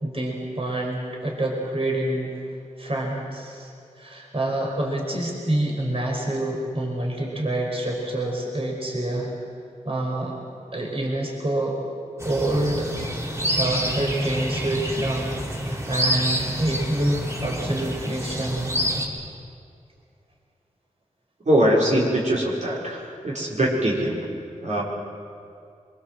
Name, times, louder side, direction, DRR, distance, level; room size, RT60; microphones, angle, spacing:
voice 1, 0.0-2.3 2.8-3.7 4.0-9.3 9.8-10.3 10.7-11.8 12.2-12.9 13.3-15.4 15.6-18.8, right 1 dB, 45° right, -1 dB, 5.0 m, -27 dB
sound 1, 12.2-19.1, equal, 20° right, 4.1 m, -27 dB
voice 2, 21.4-24.2 24.6-24.8, right 1 dB, 60° right, -5 dB, 5.0 m, -22 dB
24.5 x 23.0 x 7.7 m, 2.4 s
wide cardioid pair, 70°, 13 cm